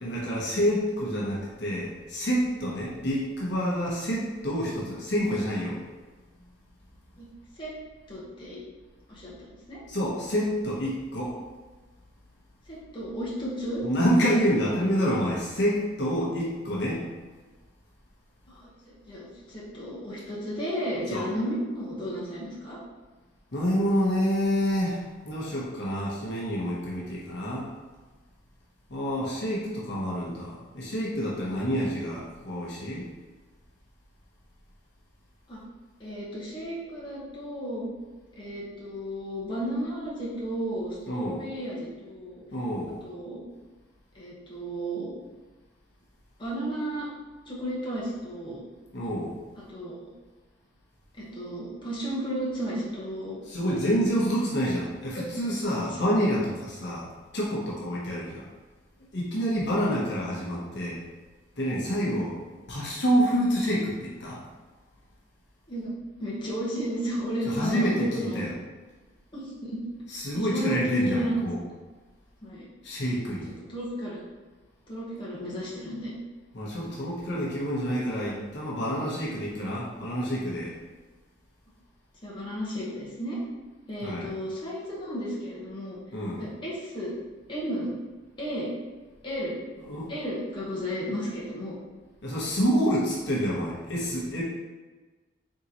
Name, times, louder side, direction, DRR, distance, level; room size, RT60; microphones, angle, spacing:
voice 1, 0.0-5.8 9.9-11.3 13.8-17.0 21.1-21.2 23.5-27.7 28.9-33.0 41.1-41.4 42.5-43.0 48.9-49.4 53.5-57.1 57.3-58.5 59.1-61.0 61.6-62.4 62.7-64.4 67.4-68.5 70.1-71.6 72.8-73.5 76.5-80.7 84.0-84.3 86.1-86.4 89.9-90.1 92.2-94.4, equal, 65° left, -5 dB, 1.0 m, -28 dB
voice 2, 8.1-8.6 9.1-9.8 12.7-13.9 18.5-22.8 35.5-35.6 36.0-37.9 38.3-42.4 43.0-43.4 44.1-45.1 46.4-47.1 47.5-48.6 49.7-50.1 51.2-53.4 55.1-55.2 55.8-56.0 62.2-62.3 65.7-68.4 69.3-69.8 70.3-71.4 72.4-72.7 73.7-74.2 74.9-76.1 82.2-83.4 83.9-86.0 86.4-87.1 87.5-87.9 88.4-88.7 89.2-89.5 90.1-91.8, equal, 25° left, -7 dB, 1.1 m, -33 dB
4.0 x 3.6 x 2.9 m, 1.3 s
head